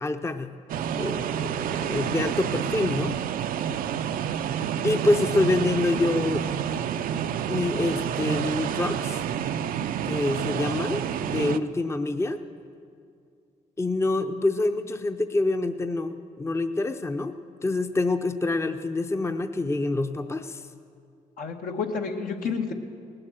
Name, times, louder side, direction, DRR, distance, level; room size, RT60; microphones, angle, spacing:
voice 1, 0.0-0.5 1.0-3.2 4.8-6.4 7.5-9.2 10.0-12.4 13.8-17.3 17.6-20.6, left 2 dB, 20° left, 8 dB, 0.6 m, -26 dB
sound 1, 0.7-11.6, right 9 dB, 75° right, 0.4 m, -29 dB
voice 2, 21.4-22.7, left 5 dB, 75° left, 3 dB, 1.2 m, -30 dB
18.5 x 7.7 x 7.7 m, 2.3 s
cardioid pair, 70°, 15 cm